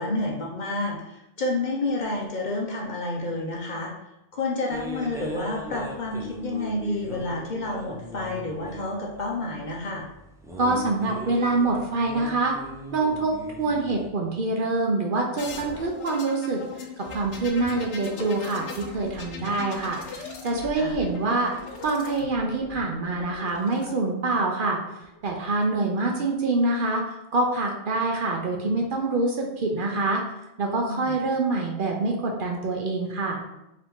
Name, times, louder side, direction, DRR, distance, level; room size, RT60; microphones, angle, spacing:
voice 1, 0.0-3.9 4.3-10.1 20.8-21.0 30.9-31.2, left 2 dB, 50° left, -2 dB, 0.7 m, -29 dB
sound 1, 4.7-14.1, right 1 dB, 5° right, 0.3 m, -39 dB
voice 2, 10.6-12.5 12.9-16.6 17.0-21.5 21.8-24.8 25.2-30.2 30.6-33.4, right 2 dB, 55° right, 0 dB, 0.8 m, -25 dB
sound 2, 15.4-23.9 25.0-25.6, left 4 dB, 85° left, 1.0 m, -39 dB
4.9 x 2.8 x 3.6 m, 0.90 s
omnidirectional pair, 1.2 m